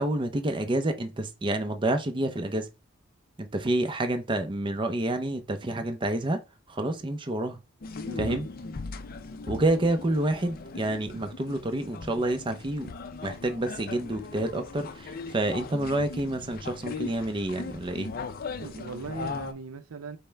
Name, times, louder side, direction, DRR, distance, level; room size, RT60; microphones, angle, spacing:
voice 1, 0.0-2.7 3.4-6.4 6.7-7.6 8.2-8.5 9.5-12.9 13.2-18.1, right 1 dB, 25° right, 0.5 m, -28 dB
sound 1, 7.8-19.5, left 4 dB, 45° left, 0.4 m, -39 dB
voice 2, 8.0-8.4 18.6-20.2, right 4 dB, 80° right, 0.5 m, -39 dB
5.4 x 2.1 x 4.4 m
head